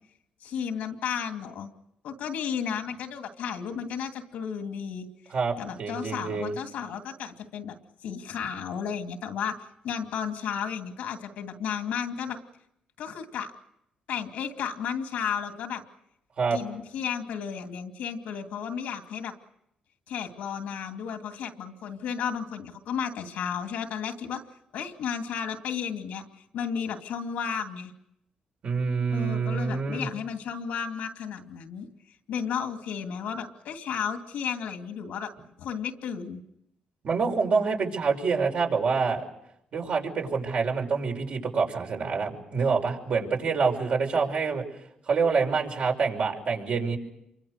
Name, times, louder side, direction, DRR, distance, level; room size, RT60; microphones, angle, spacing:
voice 1, 0.4-1.7 2.0-7.8 8.0-9.6 9.8-12.4 13.0-13.5 14.1-15.8 16.5-19.3 20.1-24.4 24.7-26.2 26.5-27.9 29.1-31.9 32.3-35.3 35.6-36.4, left 7 dB, 85° left, 5 dB, 2.6 m, -33 dB
voice 2, 5.3-6.5 16.4-16.6 28.6-30.1 37.0-39.2 39.7-44.6 45.1-47.0, right 5 dB, 60° right, 1 dB, 5.9 m, -26 dB
28.0 x 24.0 x 6.7 m, 0.79 s
cardioid pair, 80°, 2 cm